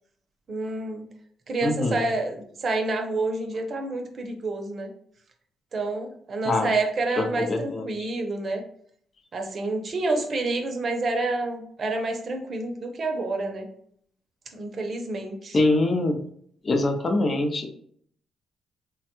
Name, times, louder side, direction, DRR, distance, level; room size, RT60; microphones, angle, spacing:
voice 1, 0.5-1.0 1.5-4.9 5.7-8.6 9.3-13.7 14.5-15.6, right 2 dB, 45° right, 4 dB, 0.6 m, -28 dB
voice 2, 1.6-2.0 6.4-6.7 7.2-8.1 15.5-16.2 16.6-17.7, left 2 dB, 35° left, 5 dB, 0.5 m, -24 dB
3.2 x 2.2 x 2.9 m, 0.63 s
cardioid pair, 90°, 0 cm